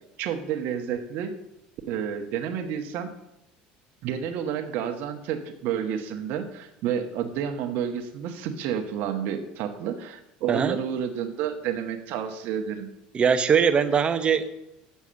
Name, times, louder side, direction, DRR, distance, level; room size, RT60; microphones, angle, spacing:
voice 1, 0.2-1.3 1.9-3.1 4.0-12.9, right 8 dB, 65° right, 4 dB, 1.0 m, -30 dB
voice 2, 13.1-14.5, right 6 dB, 30° right, 10 dB, 0.8 m, -21 dB
7.0 x 6.4 x 6.9 m, 0.86 s
supercardioid pair, 115°, 4 cm